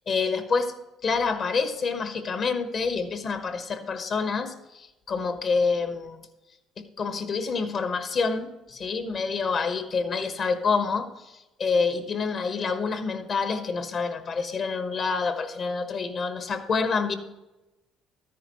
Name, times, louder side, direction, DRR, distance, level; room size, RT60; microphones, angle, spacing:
voice 1, 0.1-0.7 1.0-6.2 6.8-17.1, left 4 dB, 50° left, 8 dB, 1.4 m, -27 dB
13.0 x 10.0 x 3.2 m, 1.0 s
supercardioid pair, 85°, 0 cm